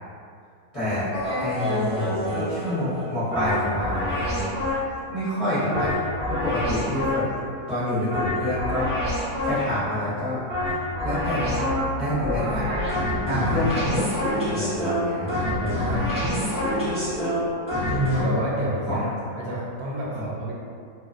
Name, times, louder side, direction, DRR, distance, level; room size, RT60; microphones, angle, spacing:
voice 1, 0.7-1.1 1.4-4.5 5.1-6.0 6.3-7.3 7.7-8.9 9.4-10.8 11.0-11.7 12.0-12.7 13.3-14.0 14.5-15.3 18.9-19.1 20.1-20.2, left 1 dB, 30° left, -15 dB, 0.7 m, -27 dB
sound 1, 1.1-5.0 5.7-7.4 8.1-9.8 10.5-18.2, left 1 dB, 10° right, 0.3 m, -27 dB
voice 2, 13.3-13.7 15.2-16.2 17.8-20.6, right 1 dB, 85° right, -5 dB, 1.1 m, -29 dB
2.4 x 2.3 x 2.4 m, 2.3 s
omnidirectional pair, 1.6 m